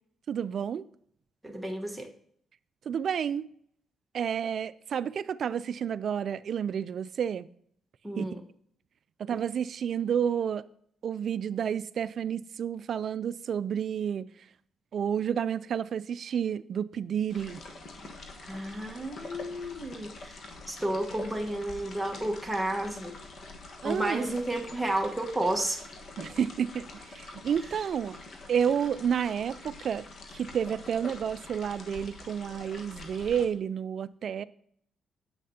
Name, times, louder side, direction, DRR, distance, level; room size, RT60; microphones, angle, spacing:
voice 1, 0.3-0.9 2.9-3.5 4.1-7.5 8.2-8.3 9.2-10.6 11.0-14.3 14.9-17.6 23.8-24.3 26.2-28.2 28.5-30.0 30.3-34.4, right 8 dB, 55° right, 0.4 m, -30 dB
voice 2, 1.4-2.1 8.0-8.4 9.3-9.4 18.5-23.2 23.8-25.8, right 1 dB, 5° right, 1.2 m, -32 dB
sound 1, 17.3-33.5, left 2 dB, 55° left, 1.3 m, -46 dB
9.9 x 7.6 x 2.8 m
cardioid pair, 105°, 0 cm